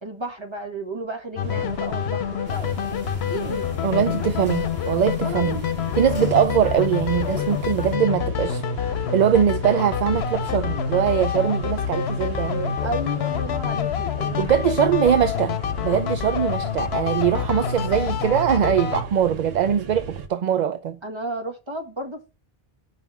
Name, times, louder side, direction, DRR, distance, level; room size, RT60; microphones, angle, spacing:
voice 1, 0.0-2.9 3.3-3.7 5.1-5.7 12.8-14.7 21.0-22.3, right 1 dB, 25° right, 1.5 m, -33 dB
sound 1, 1.4-19.0, left 8 dB, 90° left, 1.0 m, -27 dB
sound 2, 1.4-20.3, right 4 dB, 75° right, 1.1 m, -38 dB
sound 3, 2.5-8.0, left 3 dB, 35° left, 1.7 m, -38 dB
voice 2, 3.8-5.6 6.0-8.6 9.1-12.8 14.4-15.6 15.8-21.0, right 9 dB, 55° right, 0.5 m, -22 dB
5.6 x 5.3 x 5.9 m
omnidirectional pair, 1.0 m